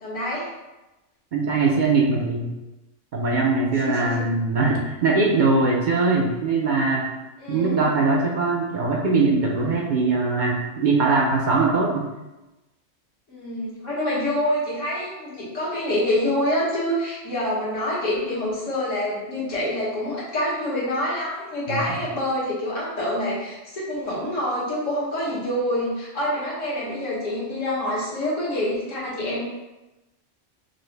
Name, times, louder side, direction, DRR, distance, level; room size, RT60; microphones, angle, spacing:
voice 1, 0.0-0.5 3.8-4.3 7.4-7.9 13.3-29.4, left 1 dB, 80° left, -6 dB, 1.5 m, -26 dB
voice 2, 1.3-2.5 3.1-7.1 7.5-12.1 21.7-21.8, right 3 dB, 55° right, -2 dB, 0.5 m, -21 dB
5.2 x 2.0 x 3.1 m, 1.0 s
omnidirectional pair, 1.3 m